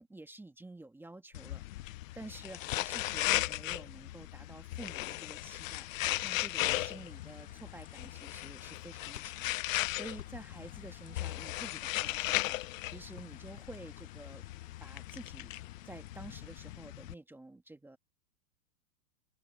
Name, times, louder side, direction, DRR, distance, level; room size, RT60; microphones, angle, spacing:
voice 1, 0.0-12.6 12.8-14.4 14.8-15.5 15.8-18.0, right 2 dB, 5° right, 1.7 m, -50 dB
sound 1, 1.3-17.1, left 17 dB, 50° left, 0.7 m, -37 dB
sound 2, 6.0-14.3, left 9 dB, 85° left, 7.2 m, -56 dB
sound 3, 6.1-16.8, left 8 dB, 15° left, 2.3 m, -61 dB
open air
hypercardioid pair, 140°, 50 cm